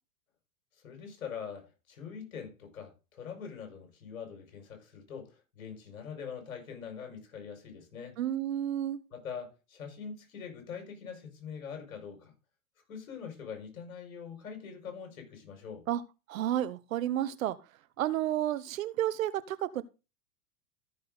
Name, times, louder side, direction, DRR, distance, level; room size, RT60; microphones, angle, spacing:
voice 1, 0.8-8.2 9.1-12.3 12.9-15.9, left 6 dB, 75° left, 5.6 m, -43 dB
voice 2, 8.2-9.0 15.9-16.0 16.3-17.6 18.0-19.8, right 12 dB, 70° right, 1.2 m, -31 dB
14.5 x 6.8 x 3.9 m
hypercardioid pair, 105°, 42 cm